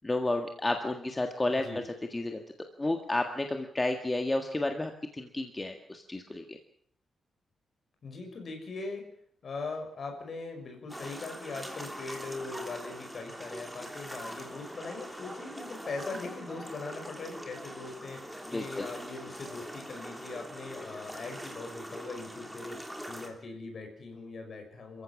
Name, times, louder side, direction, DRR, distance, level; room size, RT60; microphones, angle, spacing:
voice 1, 0.0-2.4 2.8-6.6 18.5-18.9, left 2 dB, 15° left, 4 dB, 1.7 m, -31 dB
voice 2, 1.5-1.8 8.0-9.1 9.4-25.0, left 3 dB, 45° left, 4 dB, 5.9 m, -41 dB
sound 1, 10.9-23.3, equal, ahead, 3.3 m, -43 dB
28.0 x 15.0 x 7.3 m, 0.64 s
wide cardioid pair, 160°, 0 cm